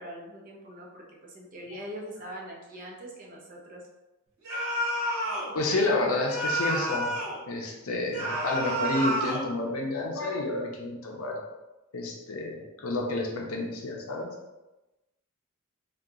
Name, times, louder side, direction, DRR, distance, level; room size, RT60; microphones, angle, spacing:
voice 1, 0.0-3.9, equal, 40° right, -3 dB, 0.7 m, -42 dB
sound 1, 4.4-5.5 6.3-7.4 8.1-9.5, right 1 dB, 80° right, 1.1 m, -29 dB
voice 2, 5.5-7.1 7.5-11.4 11.9-14.3, left 2 dB, 70° left, 0 dB, 0.6 m, -30 dB
2.8 x 2.3 x 3.6 m, 1.0 s
head